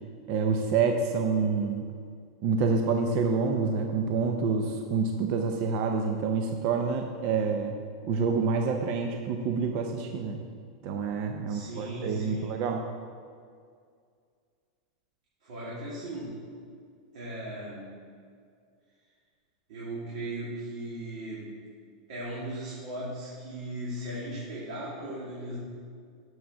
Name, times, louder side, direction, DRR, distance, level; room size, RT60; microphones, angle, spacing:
voice 1, 0.3-1.9 2.4-7.7 8.1-10.4 10.8-12.8, right 5 dB, 35° right, 4 dB, 0.5 m, -27 dB
voice 2, 11.5-12.6 15.4-16.4 17.1-17.9 19.7-21.5 22.1-25.6, right 1 dB, 60° right, -7 dB, 2.3 m, -37 dB
7.1 x 6.1 x 6.0 m, 2.1 s
supercardioid pair, 170°, 4 cm